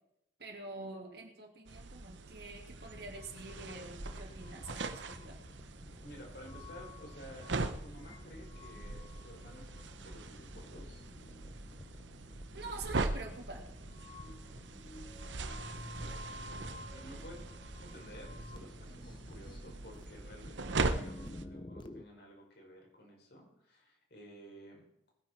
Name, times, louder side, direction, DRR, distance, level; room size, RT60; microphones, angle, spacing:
voice 1, 0.4-5.4 12.5-13.6, right 3 dB, 55° right, 2 dB, 2.7 m, -46 dB
sound 1, 1.7-21.5, right 3 dB, 80° right, 0.9 m, -41 dB
sound 2, 2.8-22.0, left 1 dB, 25° left, 0.6 m, -51 dB
voice 2, 6.0-7.5 7.8-11.0 16.9-17.4 17.8-24.8, equal, 60° left, 0 dB, 5.2 m, -53 dB
20.5 x 9.9 x 4.6 m, 0.80 s
head